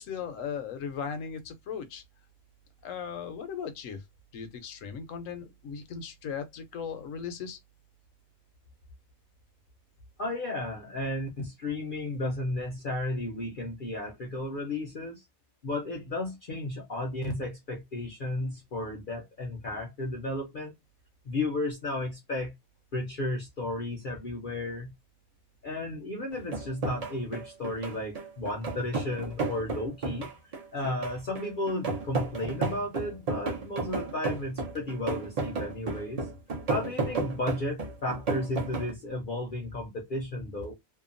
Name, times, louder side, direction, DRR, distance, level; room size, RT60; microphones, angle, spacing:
voice 1, 0.0-2.0 2.8-4.0 4.3-7.6, left 7 dB, 70° left, 1.0 m, -37 dB
voice 2, 10.2-15.2 15.6-20.7 21.2-22.5 22.9-24.9 25.6-36.3 36.7-40.7, left 2 dB, 50° left, 0.6 m, -33 dB
sound 1, 26.3-38.9, right 3 dB, 40° right, 0.6 m, -33 dB
2.8 x 2.2 x 2.5 m
omnidirectional pair, 1.4 m